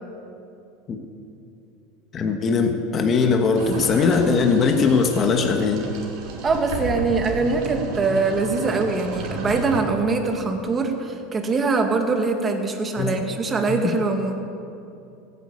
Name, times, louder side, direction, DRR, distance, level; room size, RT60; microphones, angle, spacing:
voice 1, 2.1-5.9 13.0-13.3, left 4 dB, 35° left, 4 dB, 1.6 m, -20 dB
sound 1, 3.5-9.8, right 2 dB, 65° right, 3.6 m, -33 dB
voice 2, 6.4-14.4, right 3 dB, 25° right, 4 dB, 2.1 m, -23 dB
16.0 x 10.5 x 8.7 m, 2.7 s
supercardioid pair, 115°, 0 cm